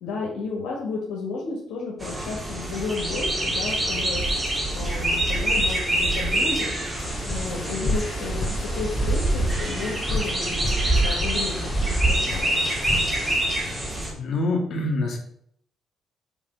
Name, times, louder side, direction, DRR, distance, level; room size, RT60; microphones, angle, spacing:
voice 1, 0.0-4.2 4.7-6.7 7.3-10.7 11.0-12.6, left 4 dB, 90° left, -3 dB, 1.6 m, -32 dB
sound 1, 2.0-14.1, right 1 dB, 20° right, 2.1 m, -25 dB
sound 2, 6.9-13.3, left 2 dB, 40° left, 2.5 m, -32 dB
voice 2, 14.1-15.2, left 2 dB, 60° left, 1 dB, 2.1 m, -25 dB
7.3 x 4.0 x 5.2 m, 0.68 s
cardioid pair, 90°, 0 cm